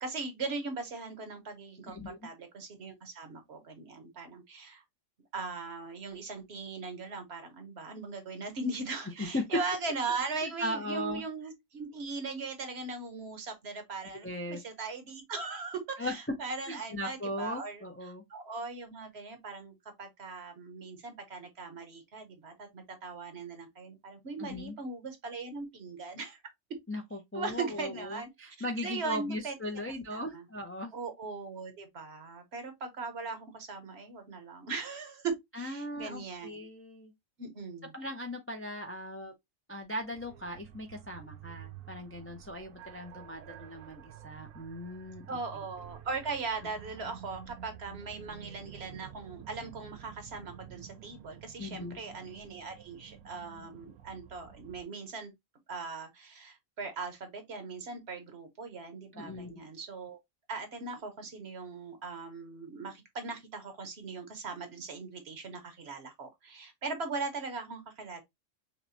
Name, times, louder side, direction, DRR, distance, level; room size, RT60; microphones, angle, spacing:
voice 1, 0.0-4.8 5.3-17.8 18.3-26.4 27.3-28.3 28.8-29.5 30.1-30.4 30.9-36.7 37.4-37.9 45.3-55.3 55.7-60.2 60.5-68.2, right 4 dB, 55° right, 1.1 m, -39 dB
voice 2, 1.9-2.3 9.2-9.4 10.4-11.2 14.2-14.6 16.0-16.4 16.7-18.2 24.4-24.8 26.9-30.9 35.5-37.1 37.9-39.3 39.7-45.6 51.6-52.0 59.1-59.6, left 1 dB, 20° left, 0.3 m, -38 dB
sound 1, 40.1-54.8, right 10 dB, 80° right, 1.0 m, -50 dB
5.6 x 2.2 x 2.6 m
omnidirectional pair, 1.3 m